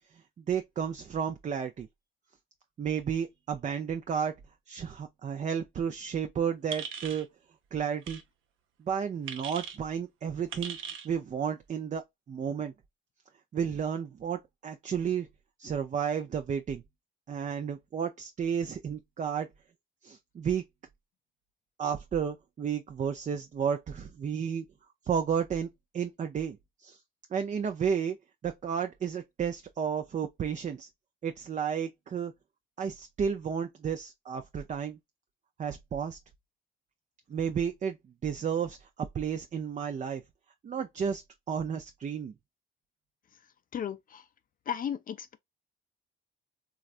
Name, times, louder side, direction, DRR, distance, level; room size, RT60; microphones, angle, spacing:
voice 1, 0.5-1.9 2.8-4.3 4.7-7.3 7.7-8.2 8.8-10.8 11.0-12.0 12.3-12.7 13.5-15.3 15.6-16.8 17.3-19.5 20.0-20.6 21.8-24.6 25.0-25.7 25.9-27.0 27.3-28.2 28.4-30.9 31.2-32.3 32.8-35.0 35.6-36.2 37.3-38.0 38.2-38.9 39.1-40.2 40.6-41.2 41.5-42.3, right 7 dB, 35° right, 0.4 m, -32 dB
sound 1, 6.7-7.2 8.0-8.2 9.3-9.8 10.5-11.1, right 7 dB, 85° right, 0.7 m, -39 dB
voice 2, 43.7-44.2 44.7-45.4, left 9 dB, 45° left, 0.4 m, -35 dB
3.1 x 2.4 x 2.4 m
cardioid pair, 90°, 20 cm